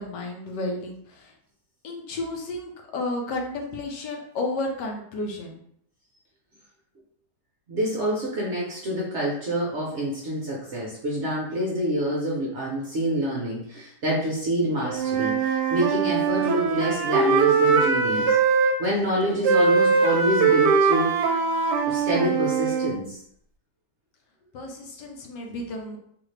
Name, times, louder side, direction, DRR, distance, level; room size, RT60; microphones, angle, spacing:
voice 1, 0.0-1.3 1.8-5.6 24.5-26.0, left 2 dB, 75° left, 1 dB, 1.3 m, -32 dB
voice 2, 7.7-21.3 21.9-23.2, right 1 dB, 55° right, -4 dB, 0.8 m, -27 dB
Wind instrument woodwind instrument, 14.8-18.8 19.4-23.0, right 5 dB, 75° right, 1.1 m, -21 dB
3.9 x 2.6 x 3.2 m, 0.66 s
omnidirectional pair, 1.9 m